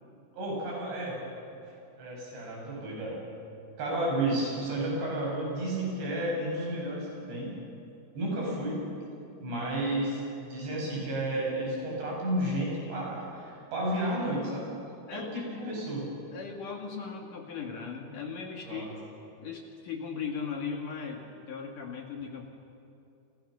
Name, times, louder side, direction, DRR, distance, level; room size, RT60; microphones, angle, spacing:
voice 1, 0.3-1.2 1.6-3.2 3.8-7.5 8.1-8.8 9.4-16.0 18.6-18.9, right 1 dB, 70° right, -3 dB, 10.0 m, -32 dB
voice 2, 15.1-15.8 16.3-18.9 19.4-22.5, left 6 dB, 55° left, 2 dB, 3.0 m, -38 dB
30.0 x 29.0 x 6.7 m, 2.7 s
omnidirectional pair, 5.1 m